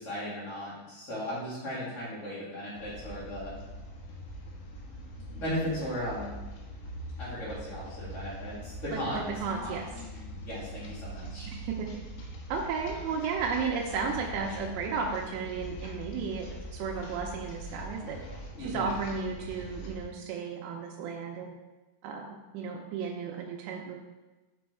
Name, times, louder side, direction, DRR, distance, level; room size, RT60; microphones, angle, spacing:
voice 1, 0.0-3.5 5.3-6.4 7.2-9.3 9.6-9.8 10.3-11.5 18.6-18.9, equal, 30° left, -10 dB, 1.5 m, -36 dB
sound 1, 2.8-20.0, equal, 85° left, 3.7 m, -43 dB
voice 2, 8.9-9.9 11.5-11.9 12.5-18.2 18.6-21.5 22.0-24.0, right 5 dB, 85° right, 0 dB, 2.8 m, -34 dB
7.7 x 5.3 x 4.5 m, 1.2 s
omnidirectional pair, 5.2 m